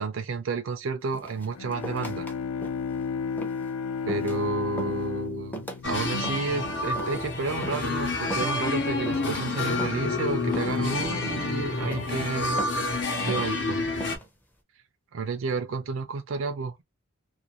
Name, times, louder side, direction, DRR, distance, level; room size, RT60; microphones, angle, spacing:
voice 1, 0.0-2.3 4.1-5.6 5.8-13.9 15.1-16.8, right 4 dB, 70° right, 0.4 m, -31 dB
sound 1, 1.1-2.3 2.6-3.0 3.4-3.7 4.1-4.4 4.8-5.1 5.5-5.8 6.2-6.6 7.0-7.3 7.6-7.9 8.3-8.8 9.0-9.4 9.8-10.2 10.5-10.9 11.2-11.5 11.9-12.2 12.6-12.9 13.3-13.6 14.0-14.3, right 1 dB, 10° left, 0.5 m, -39 dB
Bowed string instrument, 1.4-7.0, left 6 dB, 85° left, 0.4 m, -33 dB
sound 2, 5.8-14.2, left 3 dB, 55° left, 0.9 m, -28 dB
2.5 x 2.2 x 2.8 m
head